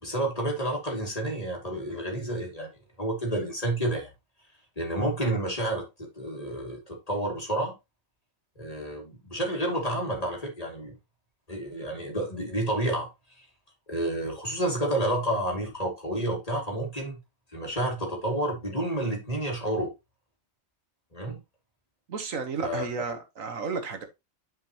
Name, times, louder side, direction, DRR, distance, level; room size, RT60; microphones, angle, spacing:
voice 1, 0.0-2.7 3.0-4.1 4.8-7.7 8.6-10.9 11.5-13.1 13.9-17.2 17.5-19.9 21.1-21.4 22.6-22.9, right 1 dB, 25° left, 2.5 m, -30 dB
voice 2, 22.1-24.1, right 5 dB, 75° right, 1.6 m, -32 dB
10.0 x 5.1 x 3.0 m
omnidirectional pair, 1.4 m